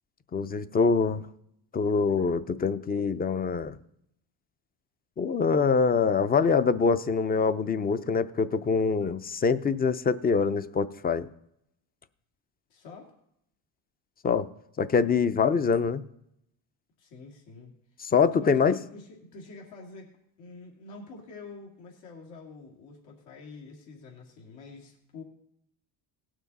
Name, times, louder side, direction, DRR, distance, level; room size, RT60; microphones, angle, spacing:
voice 1, 0.3-1.2 1.7-3.8 5.2-11.3 14.2-14.5 14.8-16.0 18.0-18.8, left 5 dB, 20° left, 14 dB, 0.5 m, -24 dB
voice 2, 12.7-13.1 17.0-17.7 18.3-25.2, left 3 dB, 75° left, -1 dB, 2.5 m, -47 dB
18.0 x 6.2 x 4.1 m, 0.76 s
cardioid pair, 100°, 46 cm